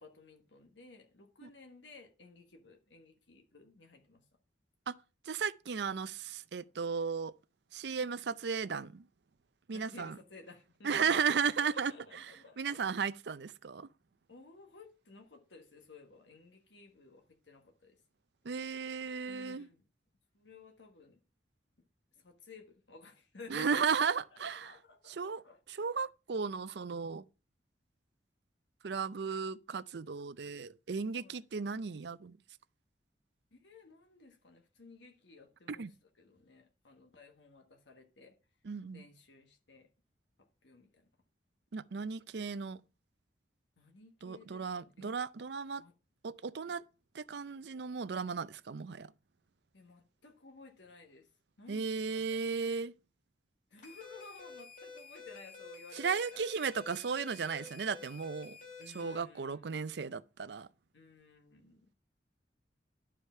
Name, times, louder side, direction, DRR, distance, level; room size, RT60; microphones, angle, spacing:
voice 1, 0.0-4.2 9.7-11.1 11.5-12.8 14.3-18.0 19.3-19.8 20.3-21.2 22.1-25.6 31.2-31.4 33.5-38.3 38.9-39.9 40.6-41.1 43.8-45.1 45.8-45.9 46.7-46.8 49.7-51.3 51.6-52.5 53.7-56.5 57.1-57.2 58.8-59.9 60.9-61.9, left 3 dB, 90° left, 1.4 m, -56 dB
voice 2, 5.3-7.3 7.7-9.0 9.7-10.2 10.8-13.9 18.4-19.7 23.5-24.7 25.1-25.4 25.7-27.2 28.8-32.4 35.7-35.9 38.6-39.0 41.7-42.8 44.2-45.8 46.2-46.8 47.1-49.1 51.7-52.9 55.9-58.6 58.9-60.7, right 5 dB, 65° right, 0.5 m, -35 dB
sound 1, 53.8-59.2, left 3 dB, 45° left, 3.3 m, -50 dB
11.5 x 5.0 x 5.5 m
head